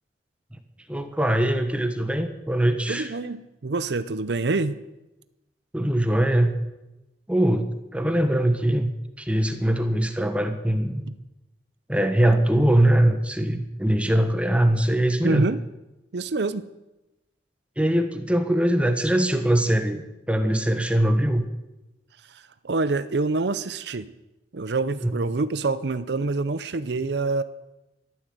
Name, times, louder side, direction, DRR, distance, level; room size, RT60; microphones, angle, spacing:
voice 1, 0.9-3.1 5.7-6.6 7.3-8.9 9.2-11.0 11.9-15.5 17.8-21.4 25.0-25.1, right 1 dB, 5° right, 7 dB, 1.2 m, -22 dB
voice 2, 2.9-4.8 11.1-11.2 15.2-15.6 16.1-16.7 22.3-24.1 24.5-27.4, right 3 dB, 65° right, 14 dB, 0.6 m, -26 dB
14.0 x 12.5 x 7.9 m, 0.99 s
head